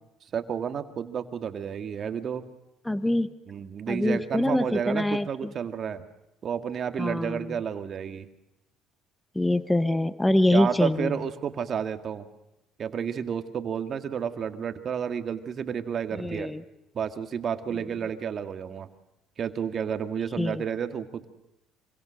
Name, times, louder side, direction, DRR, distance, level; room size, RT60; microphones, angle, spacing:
voice 1, 0.3-2.4 3.5-6.0 6.4-8.3 10.5-12.3 12.8-16.5 16.9-18.9 19.4-21.3, right 7 dB, 45° right, 8 dB, 2.1 m, -31 dB
voice 2, 2.8-3.3 3.9-5.5 7.0-7.6 9.3-11.2 16.1-16.6 17.7-17.8 20.4-20.6, left 1 dB, 10° left, 13 dB, 1.1 m, -25 dB
26.0 x 25.0 x 6.5 m, 0.89 s
supercardioid pair, 80°, 0 cm